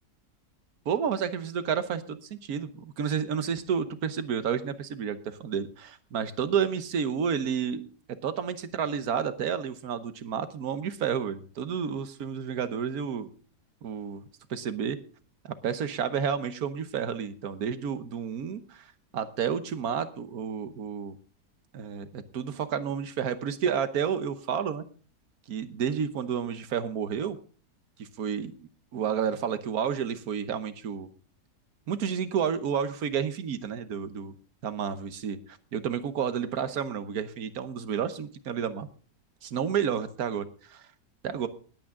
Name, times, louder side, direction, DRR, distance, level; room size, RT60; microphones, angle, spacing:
voice 1, 0.8-13.3 13.8-15.0 15.6-21.2 21.7-24.8 25.5-27.4 28.0-28.5 28.9-31.1 31.9-34.3 34.6-38.9 39.4-40.8 41.2-41.5, right 7 dB, 65° right, 11 dB, 1.4 m, -31 dB
19.5 x 8.7 x 3.7 m, 0.40 s
omnidirectional pair, 1.8 m